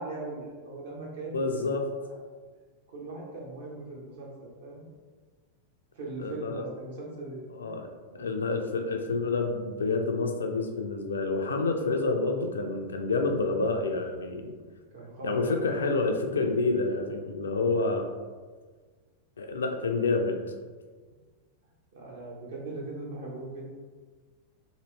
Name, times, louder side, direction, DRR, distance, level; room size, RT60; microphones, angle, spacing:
voice 1, 0.0-1.6 2.0-2.2 2.9-4.9 5.9-7.4 8.1-8.4 13.3-13.6 14.9-15.5 21.9-23.7, right 2 dB, 60° right, -3 dB, 0.9 m, -39 dB
voice 2, 1.3-1.8 6.2-6.7 7.5-7.9 8.1-14.5 15.2-18.1 19.4-20.4, left 3 dB, 70° left, 4 dB, 0.3 m, -28 dB
3.0 x 2.5 x 3.1 m, 1.4 s
figure-of-eight pair, 90°, 0 cm